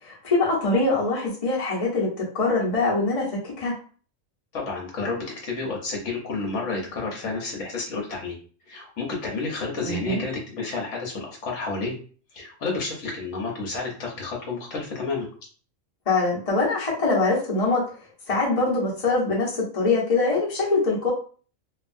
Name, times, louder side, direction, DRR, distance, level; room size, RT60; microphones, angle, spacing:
voice 1, 0.0-3.7 9.8-10.2 16.1-17.8 18.3-21.1, left 3 dB, 30° left, -5 dB, 0.9 m, -23 dB
voice 2, 4.5-8.4 8.7-12.0 12.3-15.3, left 3 dB, 70° left, -1 dB, 1.1 m, -30 dB
2.9 x 2.3 x 2.5 m, 0.41 s
omnidirectional pair, 1.4 m